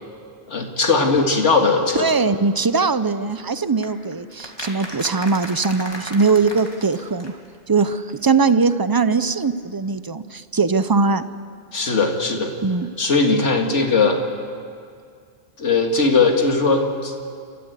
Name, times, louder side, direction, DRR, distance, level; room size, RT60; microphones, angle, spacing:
voice 1, 0.5-2.1 11.7-12.5 13.0-14.2 15.6-17.1, left 4 dB, 80° left, 3 dB, 2.3 m, -19 dB
voice 2, 2.0-7.3 7.7-11.2 12.6-12.9, right 4 dB, 30° right, 13 dB, 0.4 m, -20 dB
sound 1, 3.8-7.6 7.8-7.9 8.1-8.2 8.4-8.5, left 1 dB, 20° left, 2.5 m, -36 dB
29.0 x 13.5 x 8.2 m, 2.2 s
omnidirectional pair, 1.2 m